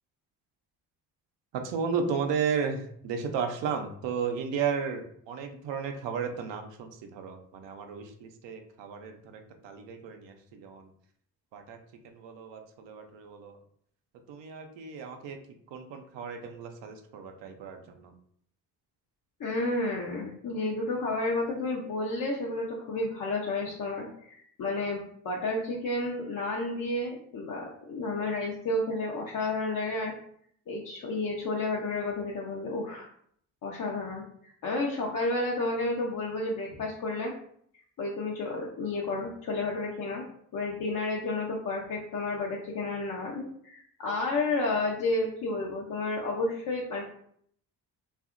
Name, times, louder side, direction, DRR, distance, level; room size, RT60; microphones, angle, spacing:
voice 1, 1.6-10.9 11.5-11.8 12.0-13.5 14.3-15.4 15.7-18.1, right 6 dB, 60° right, 5 dB, 0.6 m, -34 dB
voice 2, 19.4-30.1 30.7-33.1 33.6-37.3 38.0-40.2 40.5-47.0, left 2 dB, 40° left, -2 dB, 0.6 m, -31 dB
2.6 x 2.4 x 2.5 m, 0.65 s
hypercardioid pair, 40°, 49 cm